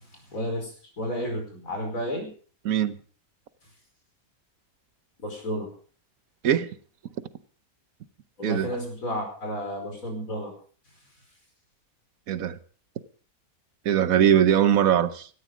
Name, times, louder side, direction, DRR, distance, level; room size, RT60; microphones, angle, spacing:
voice 1, 0.3-2.3 5.2-5.7 8.4-10.5, equal, 65° left, 5.4 m, -32 dB
voice 2, 2.6-3.0 6.4-6.7 8.4-8.7 12.3-12.6 13.8-15.3, right 9 dB, 70° right, 1.4 m, -21 dB
17.0 x 13.0 x 5.0 m
omnidirectional pair, 1.5 m